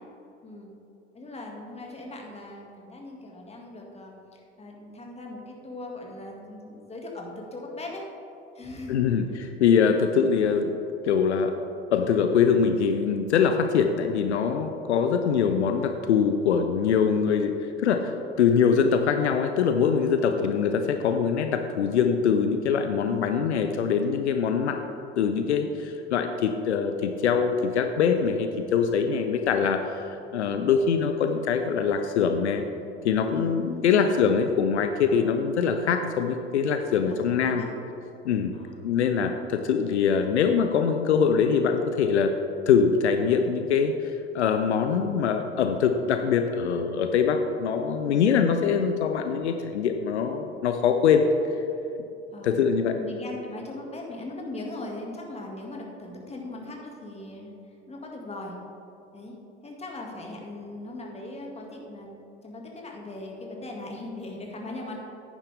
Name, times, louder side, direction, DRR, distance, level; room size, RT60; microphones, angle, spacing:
voice 1, 1.1-8.1 8.5-9.2 17.1-17.3 20.3-20.4 23.1-23.3 33.3-34.1 37.0-37.7 38.5-38.8 48.0-48.2 50.1-50.3 52.3-52.6 53.0-57.5 57.9-58.6 59.1-59.3 59.6-62.1 62.4-65.0, left 2 dB, 20° left, 0 dB, 2.1 m, -39 dB
voice 2, 8.9-9.3 9.6-10.8 11.0-11.5 11.9-17.5 17.8-24.8 25.2-32.7 33.0-37.6 38.2-38.6 38.8-42.3 42.7-43.9 44.3-51.2 52.4-53.0, left 6 dB, 80° left, 6 dB, 0.6 m, -23 dB
10.5 x 9.8 x 3.4 m, 2.8 s
figure-of-eight pair, 70°, 34 cm